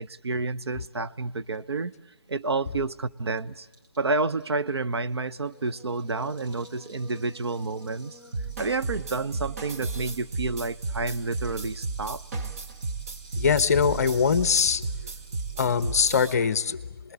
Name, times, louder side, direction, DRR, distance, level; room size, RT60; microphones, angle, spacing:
voice 1, 0.0-1.9 2.3-3.7 4.0-8.2 8.6-12.2, right 3 dB, 70° right, 0.8 m, -29 dB
Rattle (instrument), 2.4-2.5 2.7-2.8 3.0-10.1 10.4-16.3, right 1 dB, 50° right, 5.3 m, -54 dB
Singing, 5.5-10.3, left 1 dB, ahead, 2.8 m, -52 dB
sound 1, 8.3-16.3, right 3 dB, 30° right, 1.4 m, -34 dB
voice 2, 13.4-14.8 15.6-17.1, left 6 dB, 35° left, 0.9 m, -23 dB
27.5 x 20.5 x 8.5 m
figure-of-eight pair, 155°, 14 cm